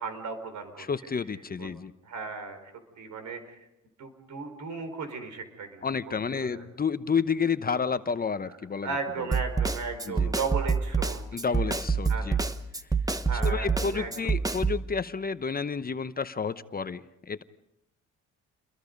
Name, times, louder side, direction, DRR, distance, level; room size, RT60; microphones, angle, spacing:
voice 1, 0.0-0.9 1.6-1.7 2.0-2.7 3.0-3.6 4.0-6.7 8.8-11.2 12.1-12.4 13.3-14.1, right 5 dB, 75° right, 8 dB, 4.7 m, -36 dB
voice 2, 0.8-1.9 5.8-8.9 10.1-10.3 11.3-12.4 13.4-17.4, left 5 dB, 30° left, 12 dB, 0.9 m, -30 dB
Snare drum, 9.3-14.8, right 4 dB, 10° right, 1.2 m, -26 dB
29.5 x 22.0 x 5.3 m, 0.86 s
cardioid pair, 90°, 30 cm